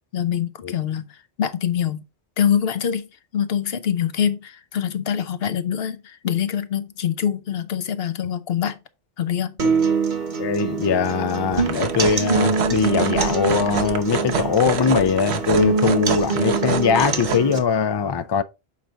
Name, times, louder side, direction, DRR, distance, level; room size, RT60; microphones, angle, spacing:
voice 1, 0.1-2.0 2.4-8.8 9.2-9.6, left 9 dB, 70° left, 0.9 m, -24 dB
sound 1, 9.6-17.6, right 4 dB, 50° right, 1.1 m, -24 dB
voice 2, 10.4-18.4, left 6 dB, 45° left, 0.3 m, -21 dB
sound 2, 11.5-17.4, right 6 dB, 85° right, 1.1 m, -27 dB
7.3 x 4.5 x 4.0 m
omnidirectional pair, 1.1 m